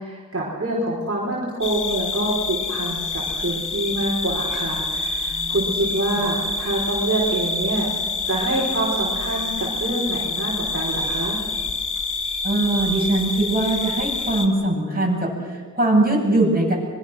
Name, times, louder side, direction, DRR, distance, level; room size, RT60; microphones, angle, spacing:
voice 1, 0.0-7.9 8.2-11.4, right 1 dB, 45° right, -5 dB, 5.0 m, -26 dB
sound 1, 1.6-14.5, left 3 dB, 80° left, 1.9 m, -27 dB
voice 2, 5.3-5.7 12.4-16.8, right 2 dB, 30° right, -2 dB, 7.6 m, -21 dB
25.0 x 22.5 x 6.4 m, 1.5 s
wide cardioid pair, 50°, 31 cm